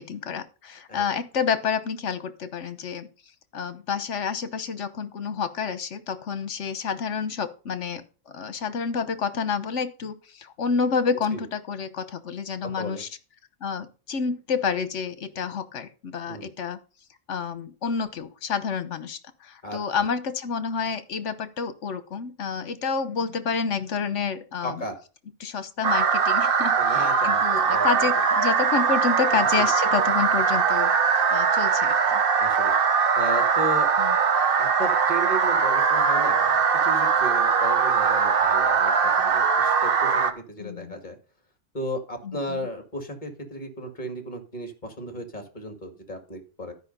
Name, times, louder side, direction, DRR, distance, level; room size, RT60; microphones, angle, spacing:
voice 1, 0.0-3.1 3.5-13.1 13.6-16.8 17.3-24.8 25.4-30.9 31.3-32.2 34.0-34.1 40.6-41.0 42.2-42.6, left 6 dB, 70° left, 12 dB, 1.4 m, -29 dB
voice 2, 24.6-25.0 26.8-27.4 27.7-28.1 29.3-29.7 32.4-32.7 33.2-33.9 34.6-41.2 41.7-46.7, equal, 40° left, 6 dB, 2.2 m, -35 dB
sound 1, 25.8-40.3, right 6 dB, 50° right, 1.0 m, -21 dB
12.5 x 5.4 x 5.3 m, 0.36 s
omnidirectional pair, 1.3 m